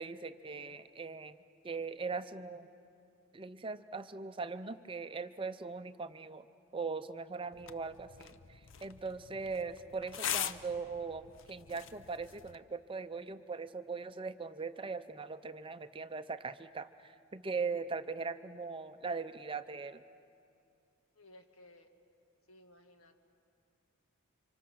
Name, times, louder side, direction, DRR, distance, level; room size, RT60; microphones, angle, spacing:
voice 1, 0.0-1.4 1.6-2.7 3.3-6.5 6.7-20.0, right 4 dB, 25° right, 11 dB, 0.5 m, -40 dB
sound 1, 7.5-12.5, left 9 dB, 60° left, 0.7 m, -42 dB
voice 2, 21.1-21.9 22.5-23.2, left 1 dB, 75° left, 5 dB, 1.9 m, -58 dB
30.0 x 26.0 x 6.3 m, 2.5 s
head